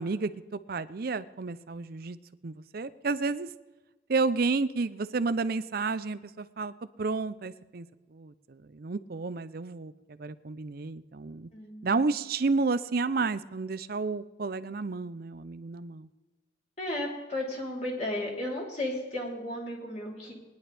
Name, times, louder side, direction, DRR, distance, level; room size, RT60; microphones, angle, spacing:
voice 1, 0.0-2.2 2.4-3.5 4.1-7.9 8.1-11.5 11.8-16.1, right 4 dB, 50° right, 14 dB, 0.5 m, -31 dB
voice 2, 11.5-12.0 16.8-20.3, left 1 dB, 35° left, -3 dB, 3.4 m, -34 dB
21.0 x 10.5 x 3.4 m, 1.2 s
head